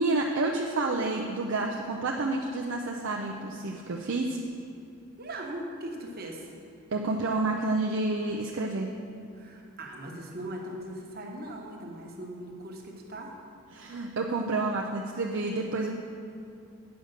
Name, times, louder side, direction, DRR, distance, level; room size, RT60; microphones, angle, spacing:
voice 1, 0.0-4.4 6.9-8.9 13.7-15.9, right 2 dB, 60° right, 0 dB, 0.5 m, -29 dB
voice 2, 5.2-6.5 9.3-13.3, right 1 dB, 45° right, 0 dB, 1.1 m, -39 dB
9.1 x 5.1 x 6.5 m, 2.5 s
head